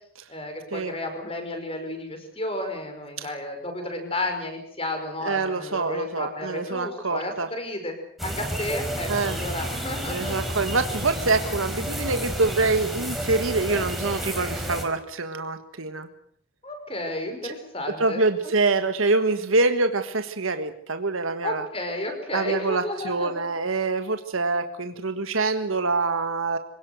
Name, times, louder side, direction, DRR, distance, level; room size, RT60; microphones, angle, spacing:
voice 1, 0.3-7.9 8.2-10.4 13.7-13.9 16.6-18.2 21.4-23.3, left 1 dB, 25° left, 6 dB, 5.5 m, -32 dB
voice 2, 5.2-7.5 9.1-9.4 10.1-16.1 17.4-17.6 18.0-21.6 22.3-26.6, right 3 dB, 75° right, 8 dB, 1.6 m, -25 dB
sound 1, 8.2-14.8, equal, ahead, 4.3 m, -31 dB
26.0 x 18.0 x 8.0 m, 0.65 s
head